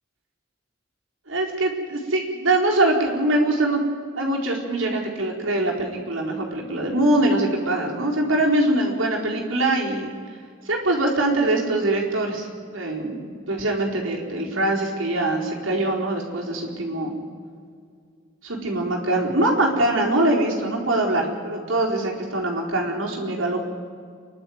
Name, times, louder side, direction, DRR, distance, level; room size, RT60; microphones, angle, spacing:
voice 1, 1.3-3.8 4.2-10.1 10.6-17.1 18.4-23.6, right 1 dB, 80° right, -1 dB, 4.5 m, -23 dB
29.0 x 11.5 x 9.6 m, 2.2 s
head